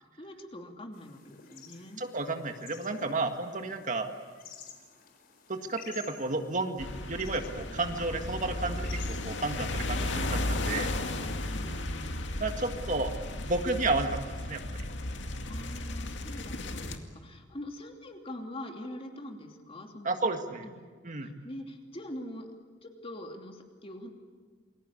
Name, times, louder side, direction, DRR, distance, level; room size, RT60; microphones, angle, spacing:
voice 1, 0.2-2.0 11.4-12.0 15.5-20.1 20.6-20.8 21.2-22.5 22.8-24.1, left 1 dB, 30° left, 3 dB, 3.0 m, -43 dB
sound 1, 0.9-11.5, left 6 dB, 55° left, 4.2 m, -53 dB
voice 2, 2.0-4.1 5.5-8.9 9.2-10.9 12.4-13.1 13.4-14.2 14.5-14.6 20.0-20.7 21.0-21.3, right 3 dB, 45° right, 5 dB, 1.8 m, -32 dB
sound 2, 6.8-17.0, left 2 dB, 85° left, 2.2 m, -34 dB
28.5 x 22.0 x 8.5 m, 1.5 s
head